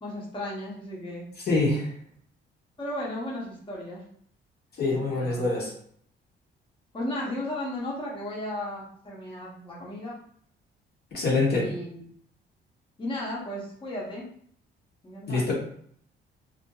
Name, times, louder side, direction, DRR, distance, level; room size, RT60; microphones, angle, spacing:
voice 1, 0.0-1.3 2.8-4.0 4.8-5.4 6.9-10.2 11.5-12.0 13.0-14.3 15.0-15.5, left 1 dB, 25° left, -4 dB, 0.8 m, -35 dB
voice 2, 1.5-1.9 4.8-5.7 11.1-11.7 15.3-15.5, left 3 dB, 55° left, -3 dB, 0.9 m, -25 dB
2.6 x 2.5 x 2.3 m, 0.62 s
cardioid pair, 90°, 20 cm